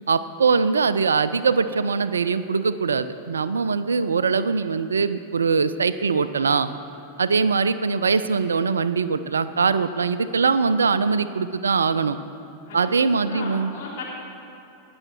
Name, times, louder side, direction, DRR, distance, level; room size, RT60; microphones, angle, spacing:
voice 1, 0.1-6.7 7.2-12.2 12.7-13.7, right 5 dB, 70° right, 13 dB, 0.4 m, -22 dB
voice 2, 12.7-14.0, left 3 dB, 50° left, -5 dB, 3.7 m, -36 dB
19.0 x 7.0 x 6.0 m, 2.9 s
figure-of-eight pair, 90°, 0 cm